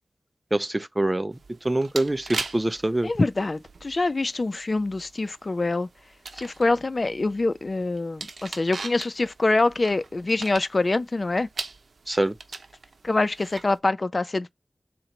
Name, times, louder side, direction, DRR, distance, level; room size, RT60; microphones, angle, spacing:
voice 1, 0.5-3.1 12.1-12.3, right 1 dB, 20° right, 0.5 m, -25 dB
sound 1, 1.3-13.8, right 4 dB, 80° right, 0.7 m, -41 dB
voice 2, 3.0-5.9 6.4-11.5 13.0-14.5, left 2 dB, 45° left, 0.3 m, -25 dB
3.9 x 2.9 x 4.4 m
wide cardioid pair, 95°, 0 cm